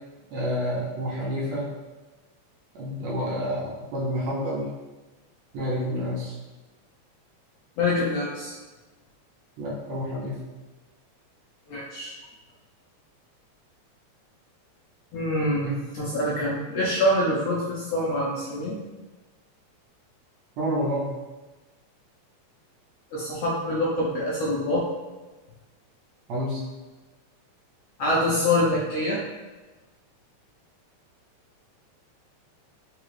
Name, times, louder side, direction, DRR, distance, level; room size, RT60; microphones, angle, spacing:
voice 1, 0.3-1.7 2.8-4.7 5.5-6.3 9.6-10.4 15.6-15.8 20.6-21.1 26.3-26.6, equal, 75° right, -5 dB, 1.9 m, -29 dB
voice 2, 7.8-8.6 11.7-12.1 15.1-18.8 23.1-24.8 28.0-29.2, left 1 dB, 75° left, -5 dB, 1.5 m, -25 dB
4.7 x 2.3 x 3.2 m, 1.2 s
omnidirectional pair, 3.3 m